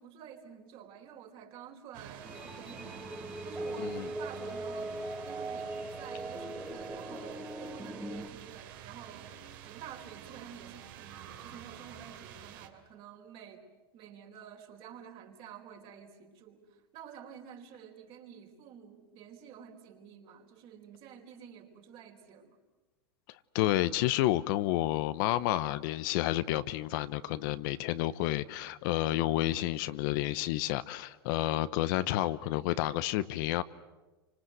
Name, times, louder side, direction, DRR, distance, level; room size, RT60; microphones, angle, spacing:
voice 1, 0.0-5.0 5.2-13.7 13.9-22.6, right 8 dB, 45° right, 3 dB, 4.4 m, -50 dB
sound 1, 1.9-12.7, right 10 dB, 60° right, 3.1 m, -48 dB
sound 2, 2.2-8.3, right 1 dB, 5° right, 1.6 m, -40 dB
voice 2, 3.8-4.1 23.5-33.6, left 15 dB, 60° left, 14 dB, 1.0 m, -30 dB
28.5 x 25.5 x 8.0 m, 1.1 s
supercardioid pair, 125°, 13 cm